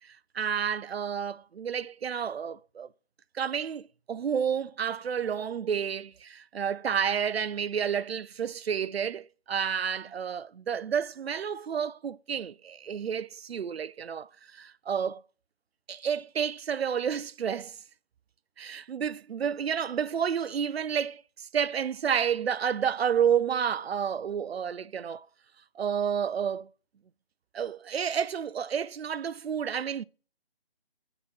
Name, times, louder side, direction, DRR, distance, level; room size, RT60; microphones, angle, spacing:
voice 1, 0.3-2.9 3.3-15.2 15.9-17.8 18.6-25.3 25.8-26.7 27.5-30.0, right 7 dB, 80° right, 0.5 m, -30 dB
8.6 x 3.9 x 6.1 m
figure-of-eight pair, 170°, 30 cm